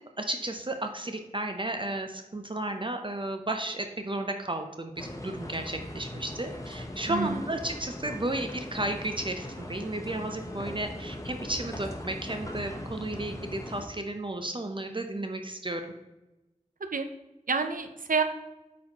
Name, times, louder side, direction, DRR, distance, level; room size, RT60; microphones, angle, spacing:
voice 1, 0.2-15.8, right 1 dB, 35° right, 5 dB, 0.5 m, -33 dB
sound 1, 5.0-13.9, left 1 dB, 25° left, 0.8 m, -40 dB
voice 2, 7.1-7.4 16.8-17.1 17.5-18.2, right 5 dB, 85° right, 7 dB, 0.5 m, -28 dB
8.5 x 4.2 x 2.9 m, 1.0 s
wide cardioid pair, 50°, 14 cm